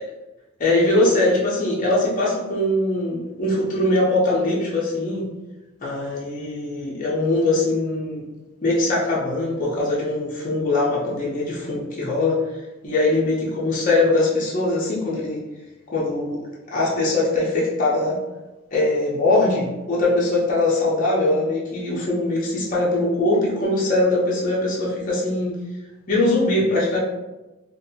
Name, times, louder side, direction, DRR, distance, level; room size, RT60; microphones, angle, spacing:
voice 1, 0.6-5.3 5.8-8.2 8.6-12.4 12.8-15.4 15.9-16.5 16.7-18.2 18.7-25.6 26.1-27.0, left 2 dB, 40° left, -5 dB, 0.5 m, -21 dB
2.6 x 2.1 x 2.7 m, 1.1 s
head